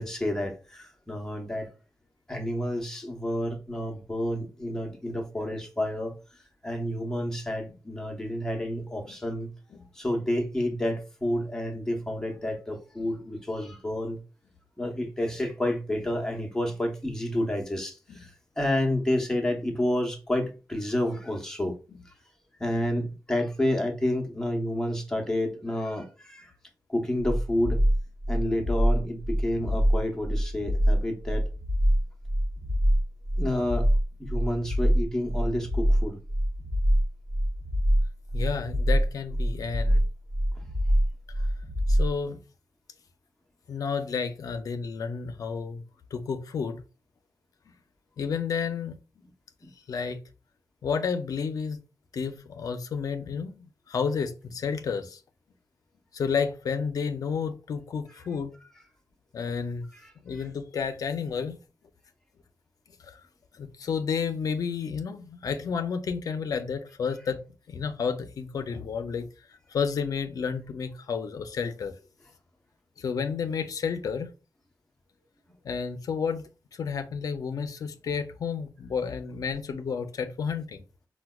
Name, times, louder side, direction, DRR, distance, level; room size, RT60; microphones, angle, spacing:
voice 1, 0.0-1.7 2.3-6.1 6.6-9.5 9.9-14.2 14.8-21.7 22.6-26.5 26.9-27.8 28.3-31.4 33.4-33.9 34.2-36.2 40.5-40.6 59.9-60.5, left 1 dB, 10° left, 0.6 m, -30 dB
sound 1, 27.2-42.1, equal, 40° right, 0.6 m, -25 dB
voice 2, 38.3-40.0 41.9-42.4 43.7-45.8 46.1-46.8 48.2-49.0 49.9-50.2 50.8-51.8 52.1-55.2 56.1-58.5 59.3-59.9 60.2-61.6 63.0-63.2 63.5-67.4 67.7-69.3 69.7-71.9 73.0-74.3 75.6-76.4 76.8-80.8, left 6 dB, 70° left, 0.4 m, -31 dB
4.5 x 2.1 x 2.2 m
wide cardioid pair, 135°, 6 cm